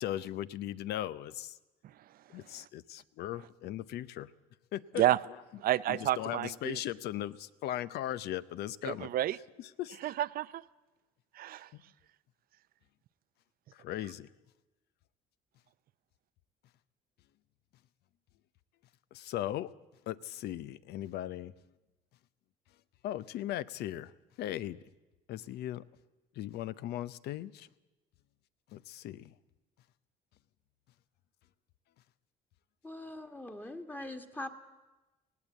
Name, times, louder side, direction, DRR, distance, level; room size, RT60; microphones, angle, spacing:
voice 1, 0.0-1.6 2.3-4.3 4.7-5.0 5.3-5.4 5.9-9.2 9.6-10.0 11.7-11.8 13.7-14.3 19.1-19.7 20.1-21.5 23.0-24.1 24.4-24.8 25.3-25.8 26.4-27.7 28.7-29.3, left 13 dB, 75° left, 17 dB, 0.7 m, -38 dB
voice 2, 5.6-6.8 8.8-9.4 10.0-10.6 11.3-11.7, right 13 dB, 60° right, 17 dB, 0.6 m, -30 dB
voice 3, 32.8-34.5, left 1 dB, 10° left, 5 dB, 1.6 m, -42 dB
18.0 x 17.5 x 8.3 m, 1.1 s
cardioid pair, 110°, 17 cm